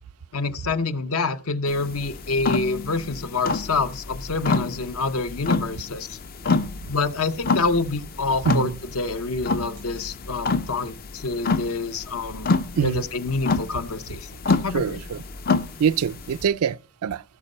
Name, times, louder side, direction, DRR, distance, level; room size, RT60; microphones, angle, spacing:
voice 1, 0.3-6.2 6.9-12.5 12.8-14.3 14.6-15.0, left 3 dB, 65° left, 0.8 m, -27 dB
sound 1, 1.7-16.4, left 4 dB, 40° left, 0.5 m, -28 dB
voice 2, 8.4-8.8 12.8-13.0 14.7-15.2 15.8-17.2, right 7 dB, 70° right, 0.4 m, -24 dB
16.0 x 5.4 x 5.4 m
head